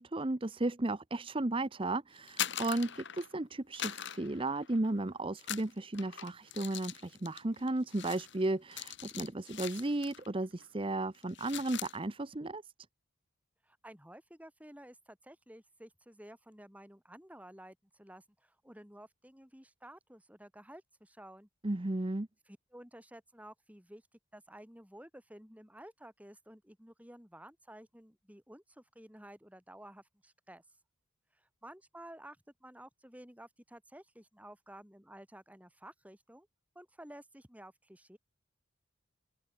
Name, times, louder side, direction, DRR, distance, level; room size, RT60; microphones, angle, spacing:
voice 1, 0.0-12.7 21.6-22.3, right 2 dB, 25° right, 0.7 m, -34 dB
sound 1, 2.2-3.4 3.7-5.0 5.4-10.3 10.6-10.8 11.1-12.0, left 10 dB, 55° left, 5.9 m, -42 dB
voice 2, 13.6-21.5 22.5-24.0 24.3-30.6 31.3-36.5 36.7-38.2, right 1 dB, 5° right, 6.6 m, -53 dB
open air
head